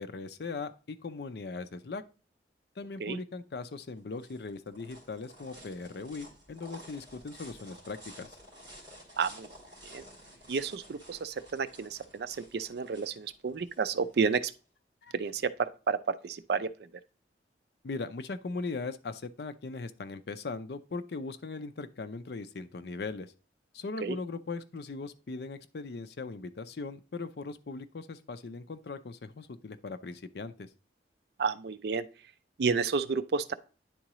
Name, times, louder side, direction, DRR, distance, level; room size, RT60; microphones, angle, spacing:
voice 1, 0.0-2.0 2.8-8.4 15.0-15.1 17.8-23.3 23.7-30.7, left 3 dB, 60° left, 0.5 m, -39 dB
sound 1, 3.7-14.6, equal, 25° right, 2.6 m, -52 dB
voice 2, 9.2-9.5 9.8-10.0 10.5-14.5 15.1-16.9 24.0-24.2 31.4-32.1 32.6-33.5, right 5 dB, 65° right, 0.4 m, -31 dB
9.9 x 3.7 x 3.0 m
head